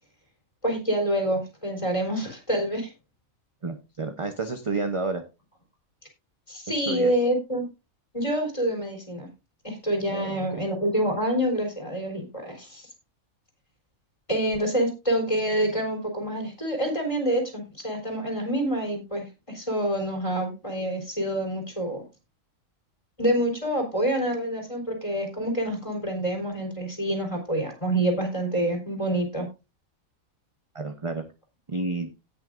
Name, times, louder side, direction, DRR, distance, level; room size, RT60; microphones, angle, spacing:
voice 1, 0.6-2.9 6.5-7.6 8.1-9.3 9.6-12.9 14.3-22.0 23.2-29.5, right 1 dB, 20° left, 2 dB, 3.8 m, -27 dB
voice 2, 3.6-5.2 6.9-7.1 10.1-10.6 30.7-31.2 31.7-32.1, right 3 dB, 25° right, 6 dB, 0.8 m, -30 dB
17.5 x 6.4 x 2.5 m, 0.28 s
omnidirectional pair, 1.4 m